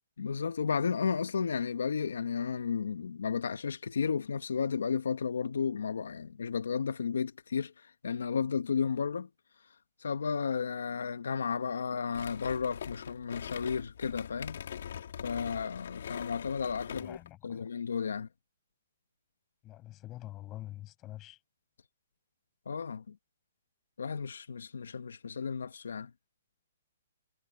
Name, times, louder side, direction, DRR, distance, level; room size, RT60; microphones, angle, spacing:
voice 1, 0.2-9.3 10.0-14.6 15.2-17.2 17.4-18.3 22.6-23.2 24.0-26.1, left 6 dB, 90° left, 1.6 m, -33 dB
sound 1, 12.1-17.3, left 9 dB, 65° left, 3.6 m, -43 dB
voice 2, 17.0-17.7 19.6-21.4, left 15 dB, 20° left, 7.1 m, -46 dB
hypercardioid pair, 155°, 0 cm